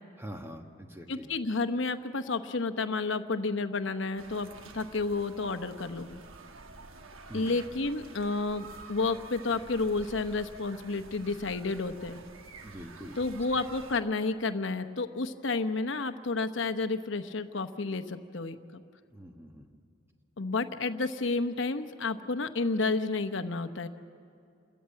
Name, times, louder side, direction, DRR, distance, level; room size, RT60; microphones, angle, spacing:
voice 1, 0.2-1.3 7.3-7.5 12.6-13.2 19.1-19.7, equal, 10° right, 4 dB, 1.3 m, -44 dB
voice 2, 1.1-6.2 7.3-12.2 13.2-18.8 20.4-23.9, left 3 dB, 65° left, 9 dB, 0.9 m, -31 dB
sound 1, 4.2-14.0, right 3 dB, 85° right, 1.1 m, -49 dB
28.5 x 14.0 x 8.9 m, 2.5 s
head